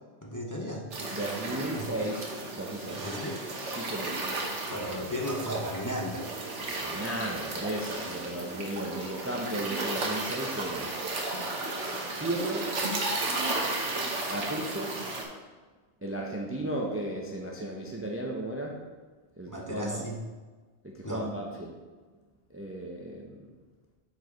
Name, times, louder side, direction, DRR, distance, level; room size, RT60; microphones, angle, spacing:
voice 1, 0.2-0.9 1.7-1.9 3.0-3.4 4.7-6.3 19.5-20.2 21.0-21.3, equal, 20° left, -2 dB, 0.8 m, -35 dB
sound 1, 0.9-15.2, right 2 dB, 85° right, 1.4 m, -34 dB
voice 2, 1.1-2.3 2.6-3.0 3.7-4.2 6.6-10.9 12.2-12.7 14.3-15.0 16.0-18.8 19.4-20.0 20.8-21.7 22.5-23.4, right 1 dB, 15° right, -1 dB, 0.6 m, -35 dB
7.3 x 4.7 x 4.6 m, 1.3 s
omnidirectional pair, 1.2 m